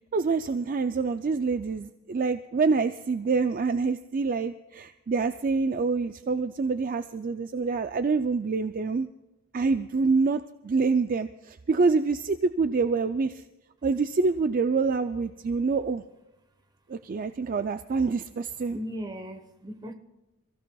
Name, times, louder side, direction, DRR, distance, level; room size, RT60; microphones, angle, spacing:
voice 1, 0.1-9.1 9.5-13.4 13.8-16.0 16.9-18.8, right 4 dB, 40° right, 10 dB, 0.4 m, -26 dB
voice 2, 18.2-19.9, equal, 20° right, 7 dB, 1.1 m, -38 dB
28.5 x 15.5 x 2.3 m, 1.0 s
head